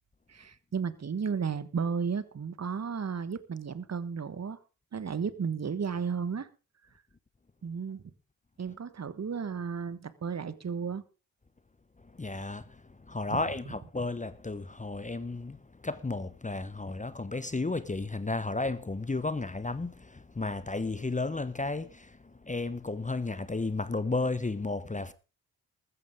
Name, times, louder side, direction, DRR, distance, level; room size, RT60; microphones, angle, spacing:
voice 1, 0.3-4.6 4.9-6.5 7.6-8.0 8.6-11.0 13.3-13.4, right 6 dB, 35° right, 1.4 m, -33 dB
voice 2, 12.2-12.7 13.1-15.6 15.8-22.1 22.4-25.1, left 3 dB, 15° left, 1.0 m, -33 dB
14.0 x 14.0 x 3.7 m
hypercardioid pair, 40°, 43 cm